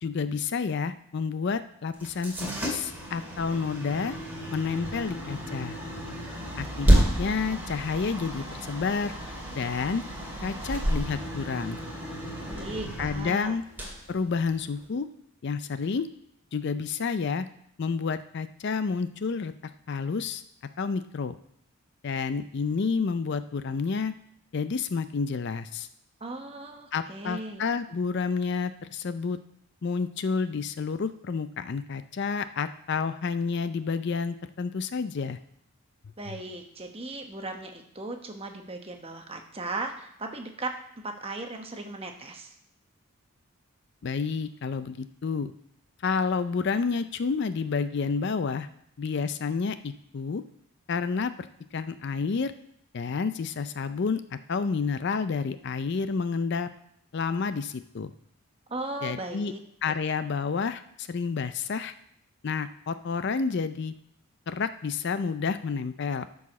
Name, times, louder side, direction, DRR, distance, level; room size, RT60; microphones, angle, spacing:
voice 1, 0.0-4.2 4.5-5.8 6.6-9.1 9.5-10.0 10.4-11.8 13.0-13.6 14.1-15.1 15.4-16.1 16.5-17.5 17.8-19.5 19.9-20.4 20.8-21.4 22.0-24.1 24.5-25.9 26.9-29.4 29.8-35.4 36.3-36.4 44.0-45.5 46.0-48.7 49.0-50.4 50.9-51.5 51.7-52.5 52.9-56.7 57.1-58.1 59.0-59.5 59.8-61.9 62.4-63.9 64.5-66.3, left 5 dB, 50° left, 12 dB, 0.4 m, -29 dB
sound 1, 1.9-14.9, equal, 10° right, 2.2 m, -30 dB
voice 2, 12.5-13.5 26.2-27.6 36.2-40.7 41.0-42.6 58.7-59.6 59.9-60.0, right 2 dB, 25° right, 4 dB, 1.0 m, -37 dB
12.5 x 4.8 x 6.0 m, 0.71 s
head